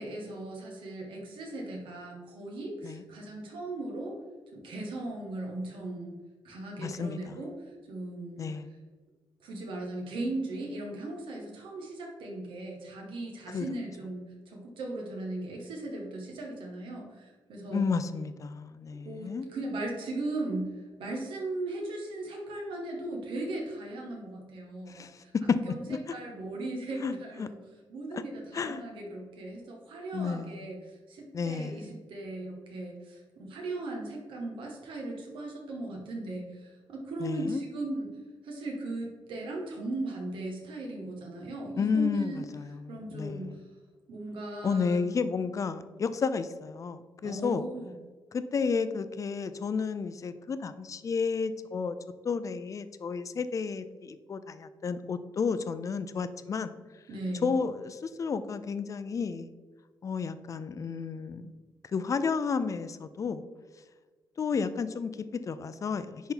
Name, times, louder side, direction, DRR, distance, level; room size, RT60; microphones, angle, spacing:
voice 1, 0.0-4.2 4.5-6.2 6.4-7.6 7.9-8.5 9.4-17.9 19.1-25.8 26.1-27.6 27.9-38.1 38.4-42.5 42.9-43.5 44.1-45.0 47.2-47.9 57.1-57.6, right 2 dB, 85° right, 0 dB, 1.8 m, -38 dB
voice 2, 6.8-7.4 8.4-8.7 13.5-13.7 17.7-19.5 24.9-26.0 27.0-27.5 28.1-28.2 28.5-28.8 30.1-30.6 31.3-31.9 37.2-37.6 41.8-43.5 44.6-47.7 48.3-52.0 52.2-56.7 57.4-59.5 60.0-61.5 61.9-63.5 64.4-66.2, left 5 dB, 40° left, 12 dB, 0.5 m, -32 dB
10.5 x 4.2 x 3.9 m, 1.4 s
cardioid pair, 115°, 8 cm